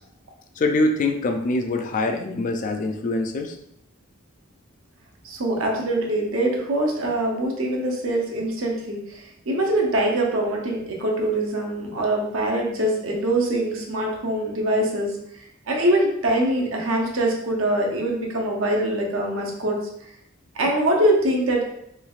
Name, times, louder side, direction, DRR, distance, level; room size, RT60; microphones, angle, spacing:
voice 1, 0.6-3.6, left 2 dB, 40° left, 4 dB, 0.3 m, -24 dB
voice 2, 5.2-15.1 15.7-19.8 20.5-21.7, right 1 dB, 75° right, 0 dB, 0.7 m, -23 dB
3.2 x 3.0 x 2.4 m, 0.74 s
head